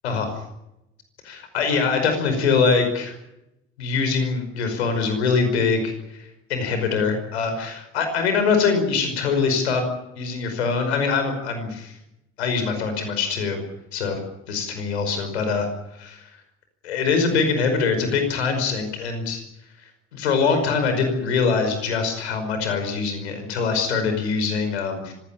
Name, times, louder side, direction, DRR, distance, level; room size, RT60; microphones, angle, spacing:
voice 1, 1.2-3.1 3.8-5.9 6.2-9.8 10.2-11.9 12.4-13.6 13.9-14.2 14.5-15.7 16.0-16.3 16.8-19.4 20.1-25.1, left 5 dB, 80° left, 7 dB, 5.3 m, -23 dB
25.0 x 17.0 x 8.9 m, 0.87 s
hypercardioid pair, 55°, 32 cm